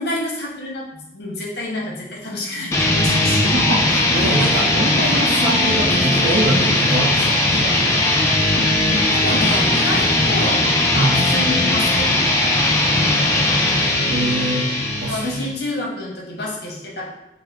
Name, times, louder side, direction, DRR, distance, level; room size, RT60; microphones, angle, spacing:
voice 1, 0.0-3.6 9.1-13.2 15.1-17.1, left 1 dB, 65° left, -2 dB, 0.8 m, -28 dB
sound 1, 2.7-15.6, left 2 dB, 15° left, 0.4 m, -18 dB
voice 2, 3.5-7.8 10.9-11.2 14.0-14.7 15.0-15.5, right 1 dB, 70° right, -5 dB, 0.5 m, -23 dB
3.5 x 2.0 x 3.3 m, 0.93 s
head